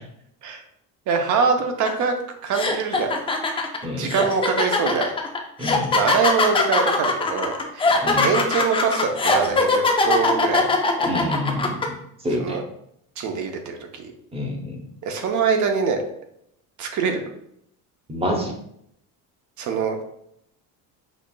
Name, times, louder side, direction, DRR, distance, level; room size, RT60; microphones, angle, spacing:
voice 1, 1.1-2.1 2.4-3.1 4.0-5.1 5.9-8.0 8.2-10.7 12.4-12.6 13.2-14.1 15.0-16.0 16.8-17.3 19.6-20.0, right 5 dB, 50° right, 4 dB, 0.8 m, -24 dB
sound 1, 1.9-2.0 2.5-11.9, left 3 dB, 15° left, 0.4 m, -21 dB
voice 2, 3.8-4.1 5.6-5.9 8.0-8.3 11.0-12.6 14.3-14.8 18.1-18.5, left 1 dB, 15° right, 3 dB, 0.7 m, -27 dB
5.8 x 2.4 x 2.2 m, 0.73 s
cardioid pair, 120°, 38 cm